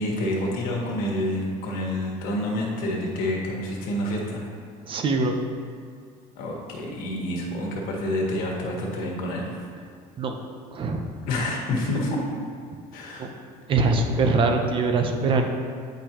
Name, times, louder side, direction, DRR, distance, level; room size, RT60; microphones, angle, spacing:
voice 1, 0.0-4.5 6.4-9.6 11.3-12.2 12.9-13.3, left 1 dB, 75° left, -2 dB, 1.6 m, -28 dB
voice 2, 4.9-5.4 10.2-10.3 10.7-11.0 13.2-13.3 13.7-15.5, right 3 dB, 35° right, 4 dB, 0.7 m, -22 dB
9.1 x 5.2 x 3.0 m, 2.2 s
cardioid pair, 150°, 15 cm